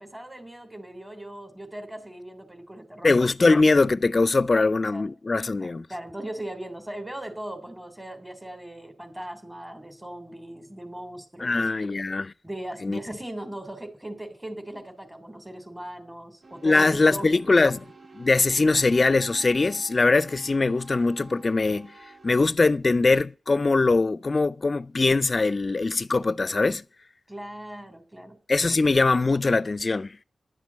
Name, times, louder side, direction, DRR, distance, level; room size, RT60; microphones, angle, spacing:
voice 1, 0.0-3.1 4.5-4.6 4.9-5.0 5.6-11.7 12.4-17.6 27.3-28.4, right 1 dB, 15° right, 3.1 m, -39 dB
voice 2, 3.0-5.9 11.4-12.3 12.8-13.0 16.6-17.8 18.2-21.9 22.2-26.8 28.5-30.2, left 3 dB, 50° left, 0.5 m, -22 dB
sound 1, 16.4-22.4, right 3 dB, 70° right, 2.5 m, -48 dB
11.5 x 7.4 x 7.4 m
cardioid pair, 45°, 0 cm